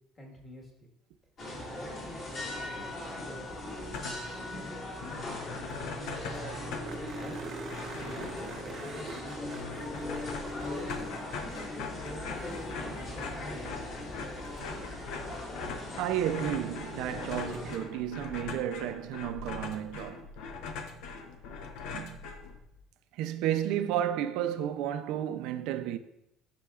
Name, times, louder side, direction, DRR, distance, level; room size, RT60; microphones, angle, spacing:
voice 1, 0.1-0.9 1.5-4.9 5.2-7.5 7.7-9.5 10.0-11.1 11.6-13.9, left 1 dB, 25° left, 1.6 m, -47 dB
sound 1, 1.4-17.8, left 1 dB, 40° left, 2.2 m, -39 dB
sound 2, 3.7-4.4 4.7-4.8 5.0-22.8, left 5 dB, 75° left, 0.8 m, -42 dB
sound 3, 5.4-5.5 5.7-5.8 6.1-6.2 6.8-12.2 14.6-14.7 17.5-17.6, right 5 dB, 45° right, 0.8 m, -45 dB
voice 2, 16.0-20.2 21.9-22.2 23.2-26.0, right 11 dB, 70° right, 0.5 m, -32 dB
11.5 x 5.8 x 2.4 m
cardioid pair, 155°, 0 cm